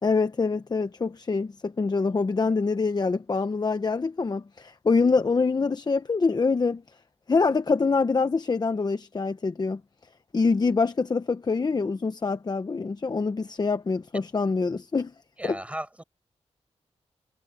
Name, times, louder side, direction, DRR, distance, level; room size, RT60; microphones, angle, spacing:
voice 1, 0.0-6.8 7.3-9.8 10.3-15.1 15.4-15.6, left 4 dB, 35° left, 0.9 m, -25 dB
voice 2, 15.4-16.0, right 1 dB, 10° right, 6.0 m, -36 dB
wide cardioid pair, 100°, 12 cm